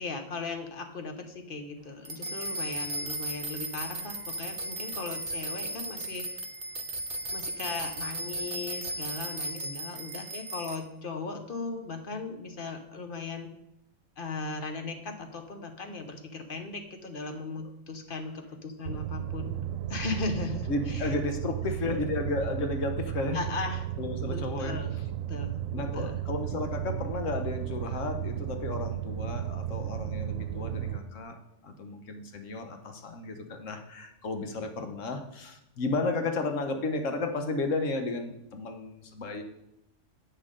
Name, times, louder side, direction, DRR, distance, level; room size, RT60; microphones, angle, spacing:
voice 1, 0.0-6.3 7.3-13.5 14.2-19.5 19.9-21.1 21.4-22.0 23.3-23.9 24.3-25.0 25.3-26.2, left 3 dB, 45° left, 6 dB, 1.1 m, -37 dB
sound 1, 2.1-10.8, right 1 dB, 50° right, 0.9 m, -36 dB
sound 2, 18.8-31.0, right 11 dB, 80° right, 1.0 m, -34 dB
voice 2, 20.7-23.4 24.0-24.8 25.7-39.4, left 3 dB, 75° left, 5 dB, 1.4 m, -33 dB
10.5 x 7.6 x 3.8 m, 0.82 s
omnidirectional pair, 1.3 m